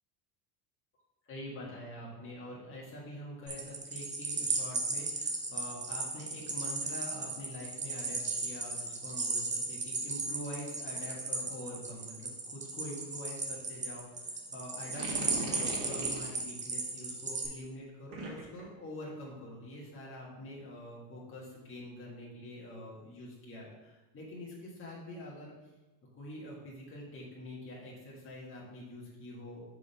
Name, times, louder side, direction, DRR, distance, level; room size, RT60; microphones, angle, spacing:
voice 1, 1.2-25.5 26.2-29.6, left 1 dB, 25° left, -5 dB, 1.5 m, -45 dB
sound 1, 3.5-17.5, right 3 dB, 15° right, 0.7 m, -36 dB
sound 2, 14.8-16.4 18.1-18.6, right 3 dB, 65° right, 2.1 m, -39 dB
4.8 x 3.8 x 5.5 m, 1.1 s
cardioid pair, 125°, 50 cm